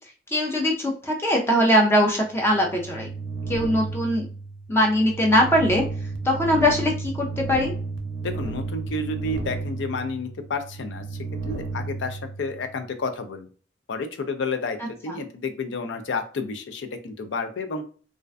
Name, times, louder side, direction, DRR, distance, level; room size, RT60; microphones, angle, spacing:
voice 1, 0.3-3.1 3.5-4.3 4.7-5.8 6.2-7.7 15.1-15.2, equal, 15° left, 0 dB, 0.4 m, -21 dB
sound 1, 2.2-12.9, right 3 dB, 75° right, 0.5 m, -33 dB
voice 2, 8.2-11.0 11.4-13.5 13.9-17.8, left 3 dB, 75° left, 7 dB, 0.4 m, -30 dB
2.4 x 2.1 x 2.4 m, 0.40 s
head